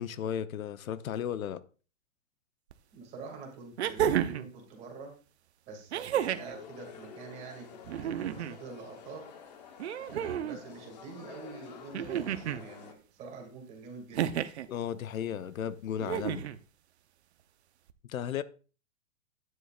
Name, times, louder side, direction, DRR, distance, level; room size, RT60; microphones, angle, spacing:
voice 1, 0.0-1.6 14.7-16.4 18.1-18.4, left 9 dB, 85° left, 0.9 m, -34 dB
sound 1, 2.7-2.8 3.8-4.5 5.9-6.6 7.8-8.6 9.8-10.6 11.9-12.6 14.1-14.7 16.0-16.6 17.9-18.0, right 10 dB, 55° right, 0.8 m, -31 dB
voice 2, 2.9-5.1 5.7-9.2 10.1-14.3, right 4 dB, 15° right, 2.2 m, -46 dB
sound 2, 6.1-12.9, left 7 dB, 30° left, 1.0 m, -50 dB
12.5 x 9.8 x 2.4 m
hypercardioid pair, 175°, 40 cm